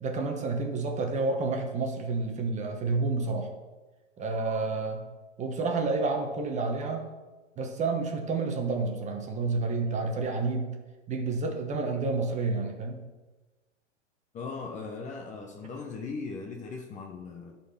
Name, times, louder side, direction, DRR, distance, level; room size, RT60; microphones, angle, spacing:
voice 1, 0.0-3.5 4.2-5.0 5.4-7.1 7.6-10.7 11.1-13.0, right 3 dB, 20° right, 3 dB, 1.2 m, -29 dB
voice 2, 14.3-17.5, left 4 dB, 20° left, 2 dB, 0.8 m, -38 dB
11.0 x 4.5 x 5.8 m, 1.2 s
hypercardioid pair, 130°, 37 cm